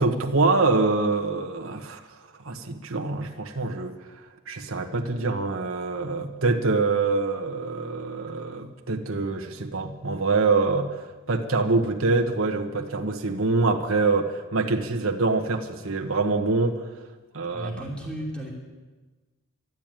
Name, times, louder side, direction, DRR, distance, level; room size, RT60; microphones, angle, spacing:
voice 1, 0.0-2.0 2.4-3.9 4.5-10.9 11.3-16.8 17.3-17.7, right 3 dB, 80° right, 2 dB, 1.3 m, -25 dB
voice 2, 17.5-18.5, right 1 dB, 5° left, -3 dB, 2.9 m, -34 dB
12.5 x 12.0 x 9.0 m, 1.3 s
head